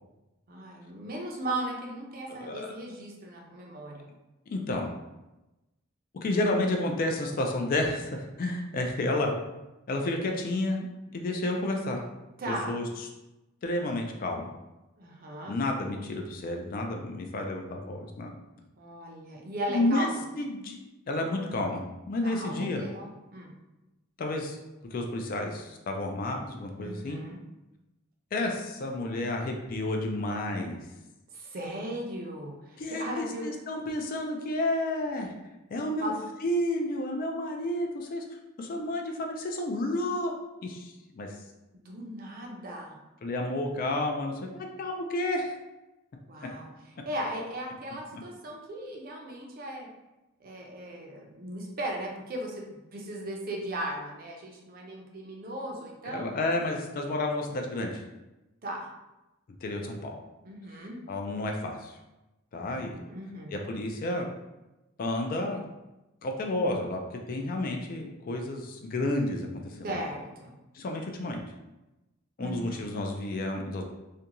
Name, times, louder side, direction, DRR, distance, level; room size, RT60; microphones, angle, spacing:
voice 1, 0.5-4.1 12.4-12.8 15.0-15.6 18.8-20.2 22.2-23.5 26.8-27.4 31.3-33.5 36.0-36.2 41.8-43.0 46.3-46.7 47.0-49.9 50.4-56.3 58.6-58.9 60.4-61.0 62.6-63.5 69.8-70.5 72.4-72.8, right 1 dB, 45° right, 0 dB, 0.5 m, -37 dB
voice 2, 2.3-2.7 4.5-4.9 6.2-9.3 9.9-12.0 12.5-12.8 13.6-14.5 15.5-18.3 19.7-20.1 20.4-20.8 21.1-22.8 24.2-24.6 24.9-27.2 28.3-30.8 32.8-35.3 35.7-36.1 36.4-38.2 38.6-40.3 40.6-41.4 43.2-45.6 48.1-48.2 56.0-58.0 59.6-60.1 61.1-62.0 62.5-63.0 63.5-64.3 65.0-65.6 66.2-67.0 67.3-70.0 70.7-71.4 72.4-73.8, left 1 dB, 45° left, 2 dB, 0.3 m, -31 dB
2.5 x 2.2 x 2.8 m, 1.0 s
head